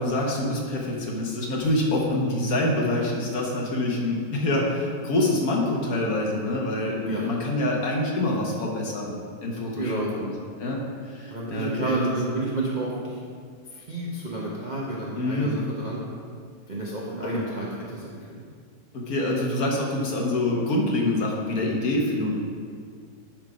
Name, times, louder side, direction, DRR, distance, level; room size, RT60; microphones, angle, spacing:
voice 1, 0.0-9.1 9.4-10.8 11.1-12.0 12.3-12.4 15.2-15.5 17.2-17.3 18.9-22.4, left 1 dB, 55° left, -2 dB, 1.4 m, -26 dB
voice 2, 9.7-10.1 11.3-13.2 13.7-16.0 16.7-18.4, right 2 dB, 40° right, -5 dB, 0.7 m, -30 dB
10.5 x 3.7 x 4.9 m, 2.1 s
omnidirectional pair, 2.0 m